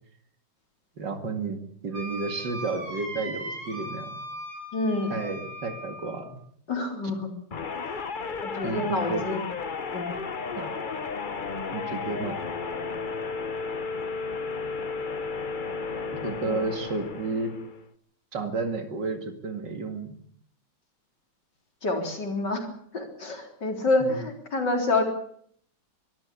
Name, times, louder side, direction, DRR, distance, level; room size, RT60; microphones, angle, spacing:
voice 1, 1.0-4.1 5.1-6.4 8.6-9.4 10.6-10.7 11.7-12.4 16.2-17.6 18.3-20.1 24.0-24.3, right 3 dB, 55° right, 7 dB, 2.8 m, -32 dB
Wind instrument woodwind instrument, 1.9-6.3, equal, 80° right, 4.4 m, -38 dB
voice 2, 4.7-5.1 6.7-7.3 8.4-9.4 9.9-10.2 16.4-16.6 21.8-22.7 22.9-25.0, left 2 dB, 55° left, 3 dB, 4.4 m, -27 dB
sound 1, 7.5-17.9, left 4 dB, 40° left, 0.7 m, -33 dB
23.5 x 14.0 x 8.5 m, 0.65 s
omnidirectional pair, 2.3 m